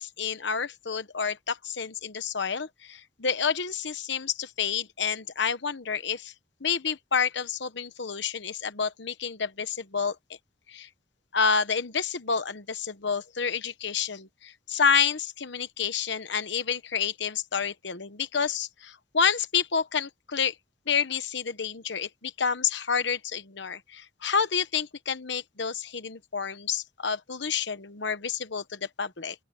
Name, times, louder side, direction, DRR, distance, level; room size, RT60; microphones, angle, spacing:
voice 1, 0.0-6.3 6.6-10.2 10.7-10.9 11.3-20.5 20.9-29.3, left 6 dB, 65° left, 1.1 m, -29 dB
open air
head